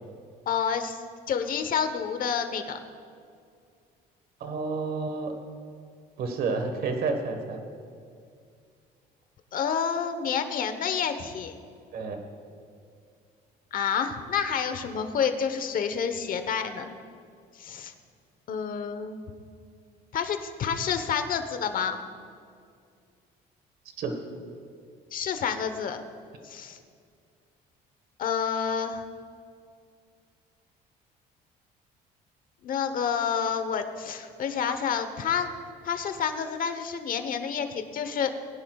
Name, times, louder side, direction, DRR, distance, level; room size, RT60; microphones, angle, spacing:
voice 1, 0.5-1.0 1.3-2.8 9.5-11.5 13.7-16.9 17.6-17.9 18.5-19.2 20.1-22.0 25.1-26.0 26.4-26.8 28.2-29.0 32.6-35.5 35.8-38.3, left 7 dB, 55° left, 8 dB, 1.1 m, -29 dB
voice 2, 4.4-5.3 6.2-7.6 11.9-12.2 24.0-24.1, right 4 dB, 65° right, 5 dB, 1.5 m, -30 dB
21.0 x 10.5 x 2.4 m, 2.3 s
cardioid pair, 110°, 17 cm